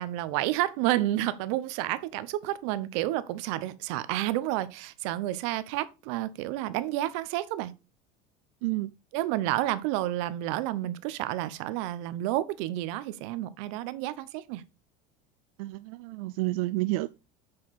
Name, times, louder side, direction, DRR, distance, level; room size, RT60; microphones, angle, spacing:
voice 1, 0.0-7.7 9.1-14.6, right 15 dB, 60° right, 0.8 m, -30 dB
voice 2, 15.6-17.1, right 20 dB, 85° right, 0.5 m, -30 dB
7.6 x 5.8 x 4.2 m
cardioid pair, 175°, 18 cm